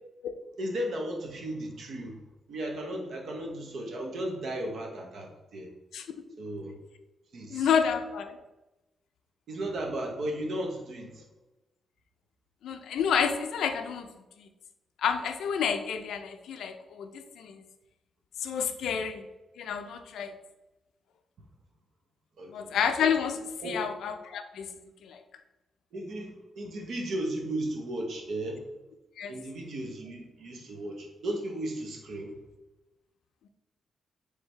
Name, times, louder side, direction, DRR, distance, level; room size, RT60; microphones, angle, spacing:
voice 1, 0.6-2.2 2.5-5.7 6.4-6.8 7.3-7.7 9.5-11.2 22.4-22.7 23.6-23.8 25.9-28.6 29.3-32.4, right 1 dB, 55° right, 1 dB, 0.8 m, -35 dB
voice 2, 7.5-8.4 12.6-14.1 14.4-14.5 15.0-17.6 18.4-19.2 19.6-20.3 22.5-23.4 23.6-24.7 25.0-25.2 29.2-29.3, left 7 dB, 85° left, 8 dB, 0.4 m, -29 dB
4.6 x 3.3 x 3.2 m, 1.0 s
wide cardioid pair, 170°, 0 cm